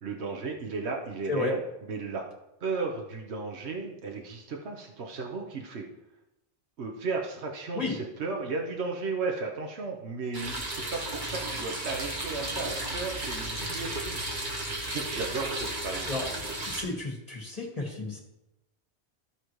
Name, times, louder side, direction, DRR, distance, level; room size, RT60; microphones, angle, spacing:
voice 1, 0.0-2.3 2.6-5.9 6.8-14.2 14.8-16.1, right 4 dB, 75° right, 1 dB, 1.2 m, -34 dB
sound 1, 10.3-16.8, right 1 dB, 45° right, 1.6 m, -34 dB
voice 2, 16.1-16.4 16.7-18.2, left 2 dB, 35° left, -2 dB, 2.0 m, -32 dB
14.5 x 5.0 x 3.1 m, 0.92 s
omnidirectional pair, 1.1 m